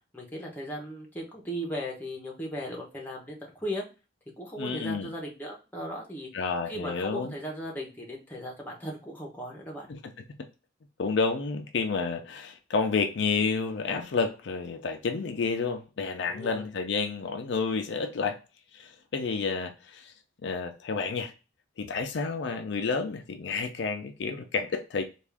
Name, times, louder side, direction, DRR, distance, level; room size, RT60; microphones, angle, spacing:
voice 1, 0.1-3.8 4.4-6.3 6.6-9.9 16.3-16.7, equal, 10° left, 0.8 m, -37 dB
voice 2, 4.6-5.1 6.3-7.3 9.9-10.0 11.0-18.4 18.7-20.1 20.4-21.3 21.8-25.0, left 4 dB, 65° left, 0.4 m, -30 dB
3.4 x 2.4 x 3.4 m
head